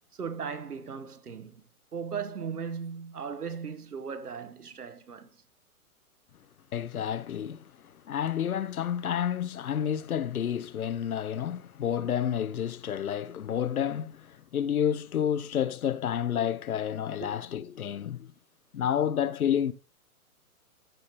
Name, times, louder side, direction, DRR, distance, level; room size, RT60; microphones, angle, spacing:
voice 1, 0.1-1.7 1.9-5.3 17.2-17.4, right 6 dB, 85° right, 1.3 m, -37 dB
voice 2, 6.7-18.3 18.7-19.7, left 9 dB, 75° left, 0.8 m, -30 dB
14.0 x 5.1 x 3.2 m
figure-of-eight pair, 125°, 44 cm